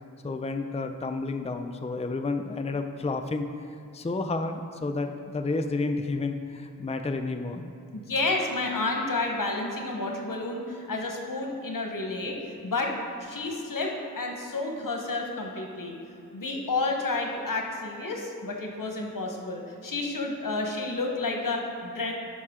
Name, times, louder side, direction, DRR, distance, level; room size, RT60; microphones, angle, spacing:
voice 1, 0.2-3.7 3.9-7.7, left 3 dB, 20° left, 6 dB, 0.5 m, -31 dB
voice 2, 7.9-12.9 13.2-16.0 16.3-22.1, left 3 dB, 75° left, 1 dB, 1.2 m, -30 dB
11.0 x 5.3 x 3.7 m, 2.7 s
cardioid pair, 45°, 33 cm